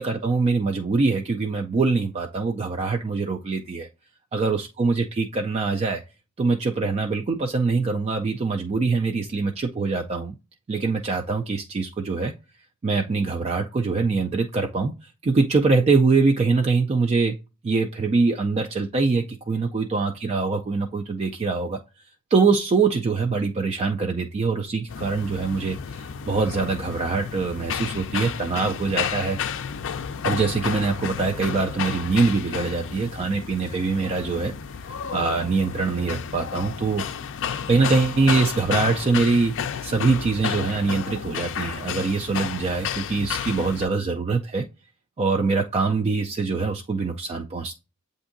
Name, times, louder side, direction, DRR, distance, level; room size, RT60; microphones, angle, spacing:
voice 1, 0.0-3.9 4.3-6.0 6.4-10.4 10.7-12.3 12.8-17.4 17.6-21.8 22.3-29.4 30.2-34.5 35.1-37.0 37.7-39.5 39.8-44.6 45.2-47.8, right 4 dB, 30° right, 3 dB, 0.3 m, -23 dB
sound 1, 24.9-43.8, left 7 dB, 60° left, 0.4 m, -32 dB
7.8 x 2.6 x 2.5 m, 0.29 s
head